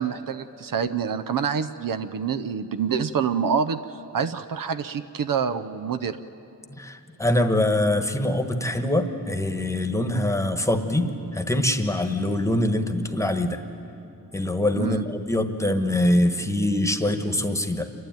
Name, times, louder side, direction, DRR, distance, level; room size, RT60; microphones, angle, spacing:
voice 1, 0.0-6.2 14.7-15.0, right 7 dB, 65° right, 11 dB, 0.7 m, -27 dB
voice 2, 6.8-13.6 14.3-17.9, left 1 dB, 10° left, 6 dB, 1.2 m, -24 dB
28.0 x 12.0 x 9.1 m, 2.9 s
wide cardioid pair, 100°, 36 cm